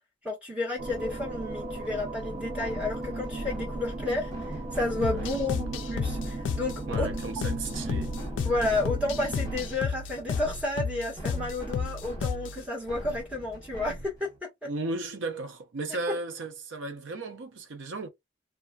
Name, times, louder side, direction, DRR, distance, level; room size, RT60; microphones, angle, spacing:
voice 1, 0.2-7.1 8.4-14.3 14.6-14.7, left 2 dB, 5° right, 1.2 m, -31 dB
sound 1, 0.8-9.6, right 2 dB, 35° right, 0.4 m, -36 dB
sound 2, 0.9-14.4, right 1 dB, 20° left, 1.0 m, -43 dB
sound 3, 5.0-12.6, left 6 dB, 80° left, 0.3 m, -33 dB
voice 2, 5.1-5.6 6.9-8.1 14.6-18.1, right 2 dB, 85° right, 0.6 m, -35 dB
2.4 x 2.3 x 2.3 m
head